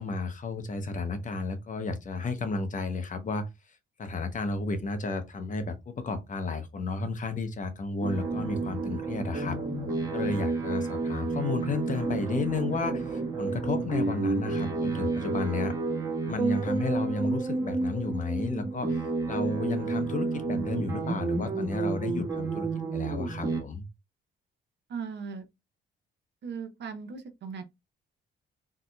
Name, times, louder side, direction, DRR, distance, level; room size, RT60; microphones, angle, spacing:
voice 1, 0.0-3.5 4.0-9.6 10.1-15.7 16.3-23.9, left 3 dB, 40° left, 0.7 m, -32 dB
sound 1, 8.0-23.6, right 3 dB, 15° right, 1.3 m, -30 dB
voice 2, 24.9-25.5 26.4-27.6, right 5 dB, 60° right, 0.8 m, -38 dB
3.7 x 2.8 x 2.2 m
cardioid pair, 90°, 20 cm